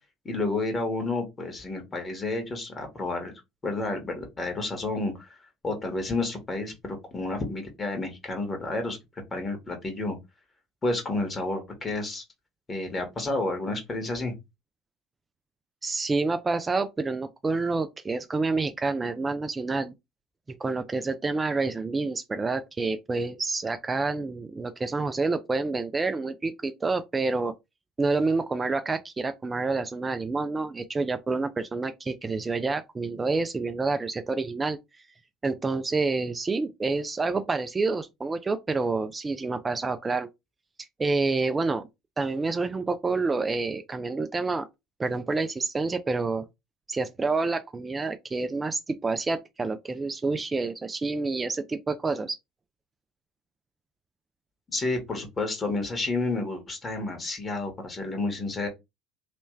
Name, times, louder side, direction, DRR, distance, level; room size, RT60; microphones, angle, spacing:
voice 1, 0.2-5.4 5.6-9.0 9.3-10.2 10.8-12.2 12.7-14.3 54.7-58.7, left 2 dB, 30° left, 1.8 m, -30 dB
voice 2, 15.8-19.9 20.6-27.5 28.0-34.8 35.4-40.3 41.0-41.8 42.2-44.7 45.0-46.4 46.9-52.4, right 3 dB, 25° right, 0.4 m, -28 dB
3.3 x 3.0 x 3.2 m
hypercardioid pair, 70°, 0 cm